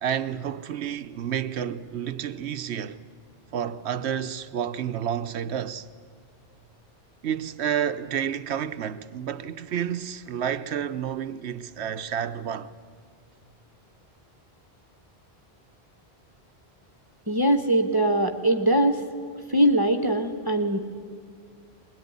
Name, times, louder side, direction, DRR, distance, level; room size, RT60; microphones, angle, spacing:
voice 1, 0.0-3.0 3.5-5.9 7.2-12.7, right 9 dB, 85° right, 1.1 m, -30 dB
voice 2, 17.3-19.0 19.5-20.8, right 1 dB, 20° right, 1.2 m, -22 dB
22.0 x 20.5 x 9.5 m
omnidirectional pair, 1.1 m